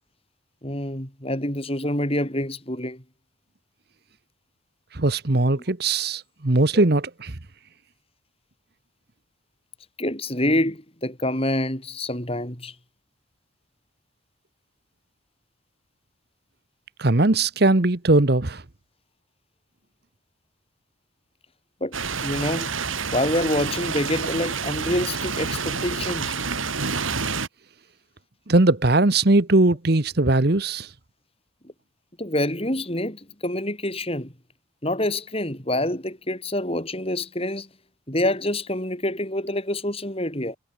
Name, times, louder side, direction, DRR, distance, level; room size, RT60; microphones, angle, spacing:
voice 1, 0.6-3.0 6.7-6.8 10.0-12.7 21.8-21.9 22.2-22.7 23.1-26.4 31.6-31.7 32.2-34.3 34.8-37.7 38.1-40.6, left 1 dB, 30° left, 6.6 m, -26 dB
voice 2, 4.9-7.3 17.0-18.6 28.5-30.9, right 2 dB, 50° right, 1.2 m, -20 dB
sound 1, 21.9-27.5, right 5 dB, 90° right, 4.2 m, -28 dB
head